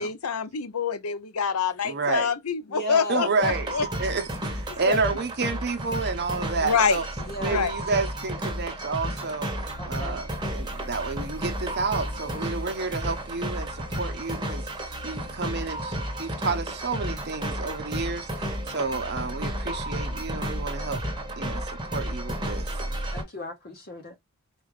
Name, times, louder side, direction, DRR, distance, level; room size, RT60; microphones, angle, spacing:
voice 1, 0.0-3.9 4.9-5.1 6.6-7.0 7.5-7.7, left 6 dB, 90° left, 0.7 m, -26 dB
voice 2, 1.8-2.3 3.1-3.7 4.0-7.0 7.4-21.0 21.4-22.8, right 4 dB, 50° right, 0.9 m, -30 dB
voice 3, 2.7-3.3 7.2-7.7 9.8-10.2 23.1-24.1, left 1 dB, 45° left, 0.9 m, -35 dB
sound 1, 3.4-23.2, right 1 dB, 20° right, 1.1 m, -32 dB
4.8 x 2.5 x 3.2 m
head